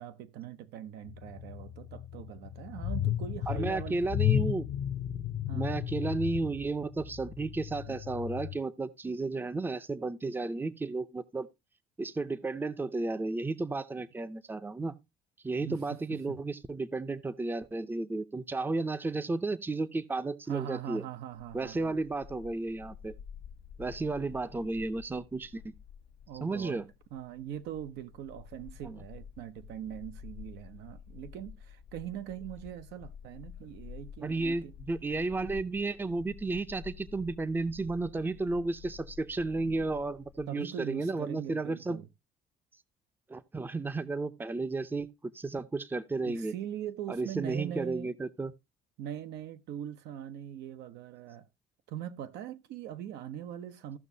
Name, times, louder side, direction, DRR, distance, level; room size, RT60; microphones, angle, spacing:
voice 1, 0.0-4.0 5.5-5.7 7.9-8.0 15.6-16.4 20.5-22.0 26.3-26.8 27.1-34.7 40.5-42.1 46.2-48.1 49.0-51.5 51.9-54.0, right 10 dB, 80° right, 0.8 m, -41 dB
sound 1, 1.1-8.6, left 11 dB, 50° left, 0.6 m, -34 dB
voice 2, 3.5-4.6 5.5-11.5 12.0-14.9 15.4-21.0 21.5-23.1 23.8-25.7 26.4-26.9 28.8-29.0 34.2-42.0 43.3-46.5 47.1-48.5, right 3 dB, 10° right, 0.6 m, -33 dB
Bark, 21.3-40.4, left 8 dB, 90° left, 0.9 m, -50 dB
15.5 x 5.9 x 2.7 m
cardioid pair, 110°, 17 cm